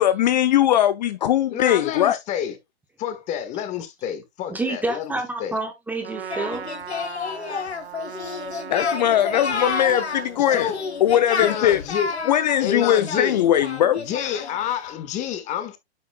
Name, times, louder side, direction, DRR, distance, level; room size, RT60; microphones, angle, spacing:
voice 1, 0.0-2.2 8.7-10.7 11.0-11.8 12.3-14.0, left 11 dB, 45° left, 0.6 m, -20 dB
voice 2, 1.5-2.6 3.0-5.6 10.5-10.8 11.4-12.1 12.6-13.4 14.0-15.8, left 9 dB, 20° left, 1.5 m, -29 dB
voice 3, 4.5-6.7, right 2 dB, 5° right, 0.8 m, -28 dB
Trumpet, 6.0-11.3, right 7 dB, 65° right, 1.2 m, -39 dB
Singing, 6.3-14.6, left 5 dB, 75° left, 2.0 m, -30 dB
9.3 x 7.3 x 2.2 m
hypercardioid pair, 130°, 32 cm